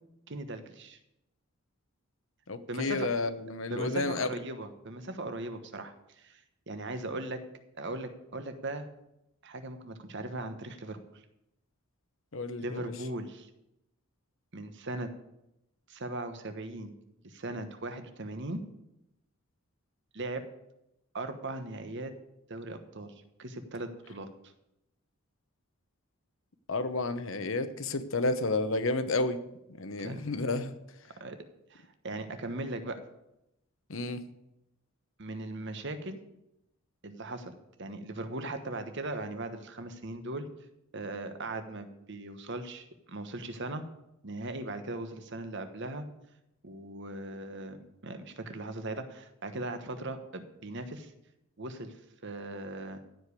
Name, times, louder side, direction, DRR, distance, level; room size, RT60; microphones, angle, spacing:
voice 1, 0.3-1.0 2.7-3.1 3.7-7.4 7.7-8.9 9.4-11.2 12.6-13.5 14.5-15.1 15.9-16.9 17.2-18.6 20.1-20.4 21.1-22.1 22.5-23.1 23.4-24.3 30.0-30.3 31.2-31.4 31.7-33.0 35.2-36.2 37.0-40.5 40.9-43.8 44.2-46.1 46.6-51.1 51.6-52.0 52.2-53.0, right 2 dB, 55° right, 8 dB, 1.2 m, -39 dB
voice 2, 2.5-4.3 12.3-12.9 26.7-29.4 29.8-30.8 33.9-34.2, left 3 dB, 60° left, 11 dB, 1.0 m, -31 dB
15.0 x 5.1 x 8.3 m, 0.86 s
head